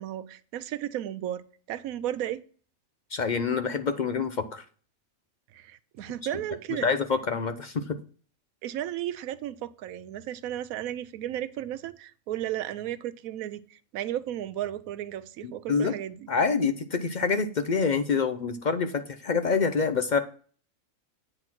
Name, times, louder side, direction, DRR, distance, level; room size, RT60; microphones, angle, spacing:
voice 1, 0.0-1.4 1.7-2.4 5.5-6.9 8.6-16.3, right 12 dB, 90° right, 1.0 m, -34 dB
voice 2, 3.1-4.6 6.7-8.0 15.4-15.9 16.3-20.2, left 5 dB, 55° left, 0.5 m, -26 dB
8.9 x 3.9 x 5.9 m
omnidirectional pair, 1.4 m